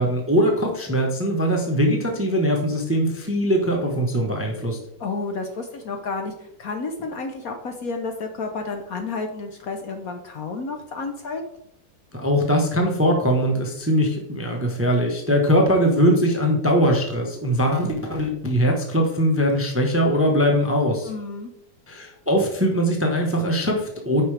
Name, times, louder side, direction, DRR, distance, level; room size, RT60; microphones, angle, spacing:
voice 1, 0.0-4.8 12.1-21.1 21.9-24.2, equal, 10° right, 1 dB, 0.8 m, -21 dB
voice 2, 5.0-11.4 21.1-21.5, left 3 dB, 60° left, 5 dB, 1.1 m, -31 dB
9.2 x 5.7 x 3.3 m, 0.77 s
omnidirectional pair, 2.0 m